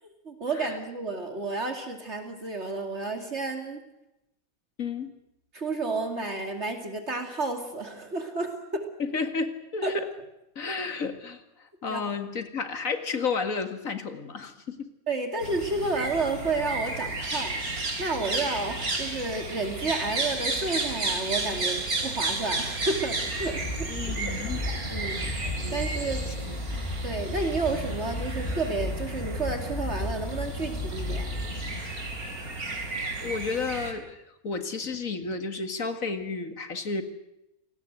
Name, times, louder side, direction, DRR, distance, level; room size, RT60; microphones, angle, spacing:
voice 1, 0.2-3.8 5.5-8.9 9.8-10.0 11.9-12.0 15.1-17.6 18.0-23.9 24.9-25.2 25.7-26.3 27.0-31.3, right 3 dB, 50° right, 5 dB, 2.8 m, -31 dB
voice 2, 4.8-5.1 9.0-10.1 10.6-11.4 11.8-14.9 23.9-24.6 26.5-26.6 33.2-37.0, left 4 dB, 70° left, 8 dB, 2.4 m, -32 dB
sound 1, 15.4-33.9, right 2 dB, 85° right, 4.1 m, -33 dB
sound 2, 23.1-32.3, left 1 dB, 30° left, 2.3 m, -34 dB
28.5 x 19.5 x 8.0 m, 0.89 s
omnidirectional pair, 1.5 m